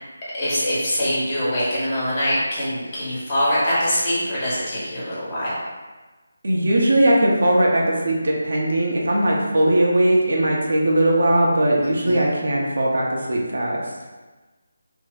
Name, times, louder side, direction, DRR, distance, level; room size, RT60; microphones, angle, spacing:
voice 1, 0.3-5.6 12.0-12.3, equal, 30° left, -9 dB, 1.2 m, -23 dB
voice 2, 6.4-13.8, right 1 dB, 60° right, -2 dB, 0.7 m, -19 dB
2.6 x 2.1 x 4.0 m, 1.2 s
figure-of-eight pair, 155°, 0 cm